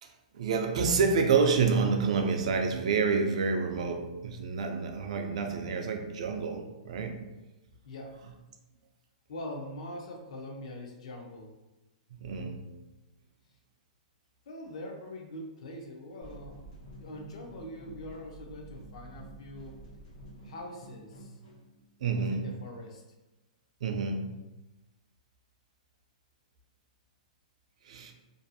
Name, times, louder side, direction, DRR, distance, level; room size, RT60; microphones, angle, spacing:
voice 1, 0.0-7.2 12.1-12.7 22.0-22.5 23.8-24.4 27.8-28.1, right 5 dB, 55° right, 4 dB, 0.3 m, -28 dB
voice 2, 7.8-8.2 9.3-11.5 14.5-16.6 16.9-19.8 20.4-21.4 22.1-23.0, left 1 dB, 50° left, 1 dB, 0.5 m, -43 dB
sound 1, 16.2-22.9, right 2 dB, 70° left, 1.0 m, -50 dB
2.6 x 2.3 x 2.6 m, 1.0 s
hypercardioid pair, 175°, 4 cm